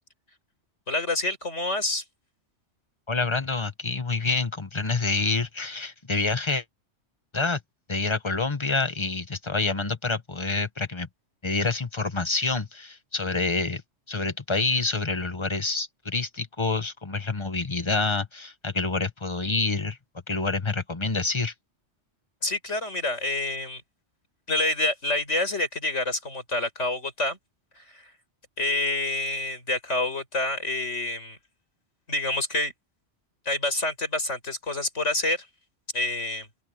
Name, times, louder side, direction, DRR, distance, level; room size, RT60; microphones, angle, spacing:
voice 1, 0.9-2.0 22.4-23.8 24.5-27.4 27.8-28.1 28.6-31.4 32.1-32.7 33.5-35.5 35.9-36.5, left 2 dB, 80° left, 5.7 m, -27 dB
voice 2, 3.1-6.6 7.3-7.6 7.9-11.1 11.4-13.8 14.1-20.0 20.3-21.5, left 3 dB, 25° left, 1.5 m, -27 dB
omnidirectional pair, 1.2 m